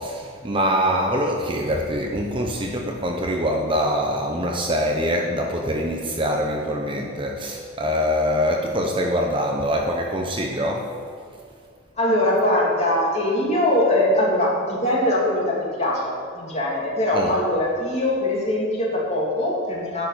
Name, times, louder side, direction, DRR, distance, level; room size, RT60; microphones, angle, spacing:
voice 1, 0.0-10.9 17.1-17.3, equal, 25° right, 1 dB, 0.9 m, -24 dB
voice 2, 12.0-20.1, left 1 dB, 30° left, -4 dB, 3.0 m, -22 dB
11.0 x 6.8 x 8.5 m, 2.4 s
head